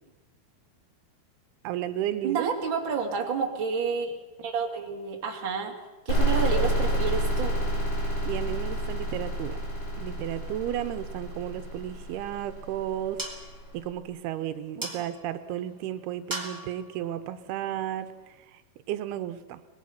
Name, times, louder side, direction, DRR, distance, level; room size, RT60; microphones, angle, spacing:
voice 1, 1.6-2.5 8.0-9.6 10.0-13.2 13.7-18.6 18.9-19.6, right 12 dB, 85° right, 11 dB, 2.8 m, -33 dB
voice 2, 2.2-4.1 4.4-5.7 6.1-7.6, right 5 dB, 35° right, 1 dB, 2.7 m, -29 dB
sound 1, 6.1-13.6, right 1 dB, 85° left, 6.4 m, -29 dB
sound 2, 12.0-18.4, right 1 dB, 5° right, 1.7 m, -42 dB
24.0 x 20.0 x 5.8 m, 1.1 s
omnidirectional pair, 4.5 m